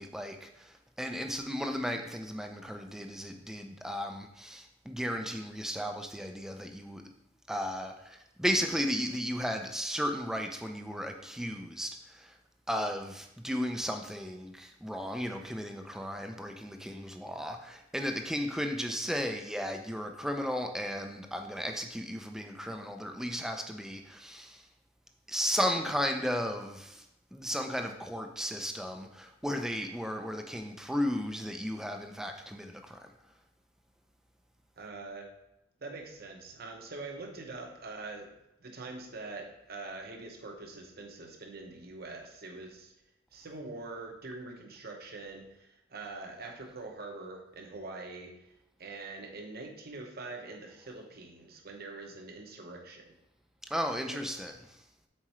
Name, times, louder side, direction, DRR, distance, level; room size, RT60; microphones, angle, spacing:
voice 1, 0.0-7.0 7.5-12.3 12.7-24.6 25.3-27.0 27.3-33.1 53.7-54.6, equal, 5° right, 4 dB, 0.5 m, -35 dB
voice 2, 34.8-35.3 35.8-38.3 38.6-42.9 43.3-48.5 48.8-53.1 54.1-54.2, right 3 dB, 55° right, 2 dB, 1.0 m, -44 dB
7.4 x 4.4 x 3.1 m, 0.85 s
head